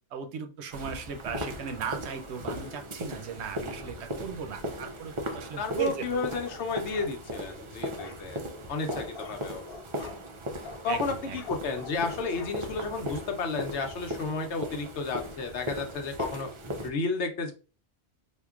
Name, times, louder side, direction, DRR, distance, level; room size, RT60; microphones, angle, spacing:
voice 1, 0.1-6.2 10.9-11.4, right 7 dB, 90° right, 8 dB, 0.9 m, -36 dB
sound 1, 0.7-16.9, equal, 45° right, 0.4 m, -38 dB
voice 2, 5.6-8.4 8.7-9.6 10.8-16.5 16.8-17.5, left 4 dB, 90° left, 5 dB, 1.0 m, -32 dB
sound 2, 6.3-7.5 8.0-8.2 8.9-10.2 10.6-10.8 11.3-12.6 13.0-13.1, left 4 dB, 65° left, 0.9 m, -45 dB
4.5 x 2.5 x 2.4 m, 0.34 s
omnidirectional pair, 1.1 m